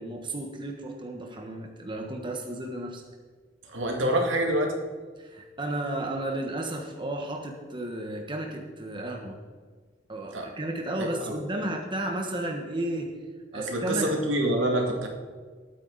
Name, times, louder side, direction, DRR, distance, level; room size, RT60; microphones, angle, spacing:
voice 1, 0.0-3.0 3.7-3.8 5.2-9.4 10.1-13.1 13.5-14.1, right 1 dB, 25° right, 1 dB, 1.3 m, -33 dB
voice 2, 3.7-4.7 10.3-10.5 11.0-11.3 13.5-15.1, right 1 dB, 75° right, 1 dB, 2.4 m, -26 dB
21.0 x 9.3 x 4.1 m, 1.5 s
head